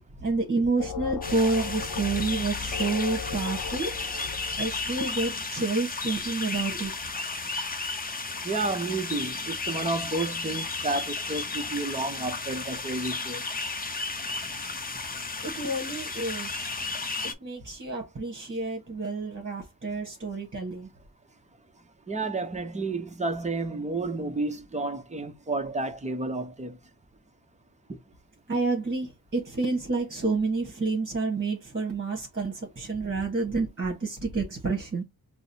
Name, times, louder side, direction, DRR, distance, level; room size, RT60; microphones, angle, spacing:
voice 1, 0.2-4.0 4.6-7.1 15.4-16.7 17.4-20.9 28.5-35.0, right 3 dB, 35° right, 1.3 m, -29 dB
sound 1, 0.8-5.5, left 6 dB, 85° left, 0.6 m, -37 dB
sound 2, 1.2-17.3, left 3 dB, 25° left, 0.6 m, -33 dB
voice 2, 8.4-13.4 22.1-26.8 27.9-28.0, right 3 dB, 20° right, 0.7 m, -31 dB
5.8 x 2.0 x 2.7 m
wide cardioid pair, 125°, 37 cm